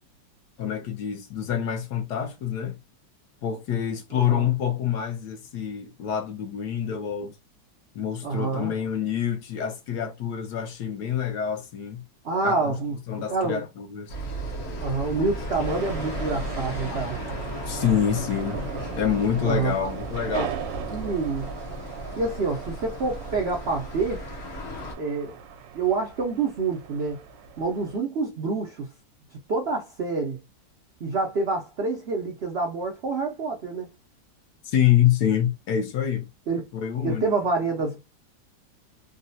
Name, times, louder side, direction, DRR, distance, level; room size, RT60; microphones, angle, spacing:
voice 1, 0.6-2.8 3.4-7.4 7.9-12.0 12.4-12.8 13.1-14.1 15.2-15.3 16.6-17.0 17.7-18.6 19.0-20.5 34.6-36.3 36.7-37.3, left 9 dB, 70° left, 1.2 m, -26 dB
voice 2, 4.1-4.5 8.2-8.7 12.2-12.9 13.3-13.6 14.8-17.2 19.4-19.7 20.3-20.5 20.9-21.5 22.2-24.2 25.0-25.4 25.7-27.2 27.6-28.9 29.5-30.4 31.0-33.9 36.5-36.6 37.0-38.0, right 4 dB, 70° right, 0.6 m, -27 dB
sound 1, 14.1-24.9, equal, 50° left, 0.8 m, -35 dB
sound 2, 15.6-28.0, right 8 dB, 90° right, 1.3 m, -38 dB
3.8 x 2.1 x 2.6 m
omnidirectional pair, 1.9 m